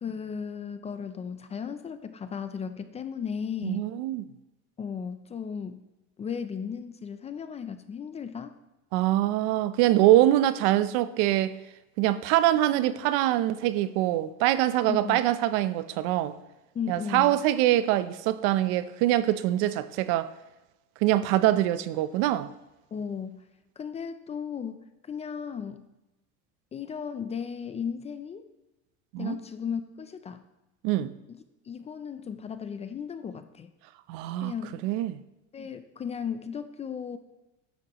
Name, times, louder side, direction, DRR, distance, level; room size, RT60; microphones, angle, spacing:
voice 1, 0.0-3.9 4.8-5.8 6.2-8.5 10.0-10.2 14.9-15.3 16.7-17.4 22.9-23.5 23.8-25.9 26.7-28.5 29.2-30.4 31.3-33.7 34.4-34.8 35.5-37.2, left 7 dB, 20° left, 0.4 m, -35 dB
voice 2, 3.6-4.2 8.9-11.5 12.0-16.3 16.9-20.3 21.0-22.5 29.1-29.4 30.8-31.1 34.1-34.5 34.8-35.2, right 14 dB, 75° right, 0.7 m, -24 dB
13.5 x 10.5 x 3.0 m
cardioid pair, 150°, 35 cm